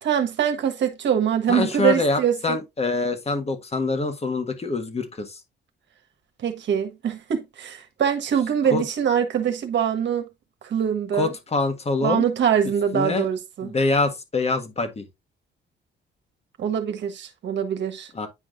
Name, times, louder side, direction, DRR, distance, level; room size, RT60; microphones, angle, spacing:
voice 1, 0.0-2.6 6.4-10.3 10.6-11.3 12.0-13.7 16.6-18.1, right 8 dB, 65° right, 1.4 m, -23 dB
voice 2, 1.5-5.4 8.7-8.8 11.1-12.2 12.9-13.3 13.6-15.0 18.1-18.3, left 3 dB, 30° left, 1.6 m, -25 dB
9.8 x 4.8 x 2.5 m
cardioid pair, 90°, 20 cm